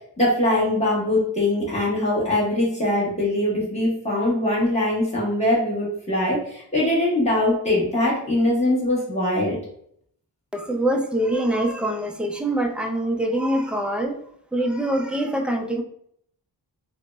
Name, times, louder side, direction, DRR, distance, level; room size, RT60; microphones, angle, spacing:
voice 1, 0.2-9.6, left 1 dB, 15° left, -6 dB, 1.1 m, -22 dB
voice 2, 10.5-14.2 14.5-15.8, right 1 dB, 5° right, 3 dB, 0.3 m, -24 dB
3.8 x 2.0 x 2.2 m, 0.67 s
wide cardioid pair, 75°, 42 cm